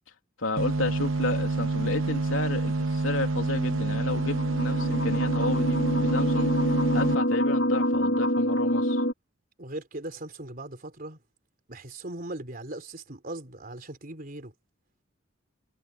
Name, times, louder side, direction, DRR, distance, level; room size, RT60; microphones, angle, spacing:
voice 1, 0.4-6.5 6.9-9.0, left 2 dB, 85° left, 3.3 m, -31 dB
sound 1, 0.6-7.2, right 2 dB, 85° right, 1.0 m, -27 dB
sound 2, 3.8-9.1, equal, 70° left, 3.7 m, -26 dB
voice 2, 9.6-11.2 11.7-14.5, right 1 dB, 45° right, 3.7 m, -39 dB
head